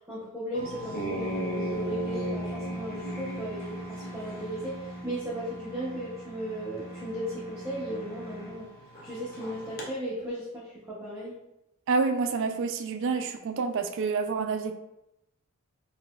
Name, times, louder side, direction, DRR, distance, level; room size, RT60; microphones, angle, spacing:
voice 1, 0.1-8.7 9.0-11.4, equal, 10° right, -9 dB, 0.7 m, -36 dB
sound 1, 0.5-9.9, right 1 dB, 45° left, 0.6 m, -37 dB
voice 2, 11.9-14.7, right 4 dB, 60° right, 7 dB, 0.3 m, -28 dB
3.9 x 2.7 x 2.3 m, 0.89 s
head